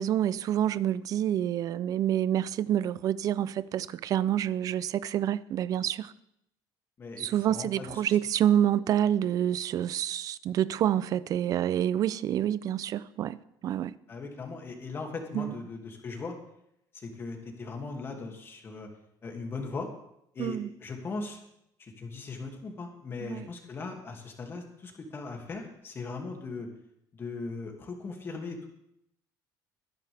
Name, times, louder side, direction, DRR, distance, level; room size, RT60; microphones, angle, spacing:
voice 1, 0.0-6.1 7.2-13.9 15.3-15.5 20.4-20.7 23.2-23.5, right 11 dB, 45° right, 0.5 m, -28 dB
voice 2, 7.0-8.2 14.1-16.3 16.9-18.9 19.2-19.9 20.3-21.4 21.8-26.7 27.1-28.7, left 3 dB, 30° left, 2.4 m, -39 dB
22.0 x 10.5 x 3.5 m
cardioid pair, 145°, 8 cm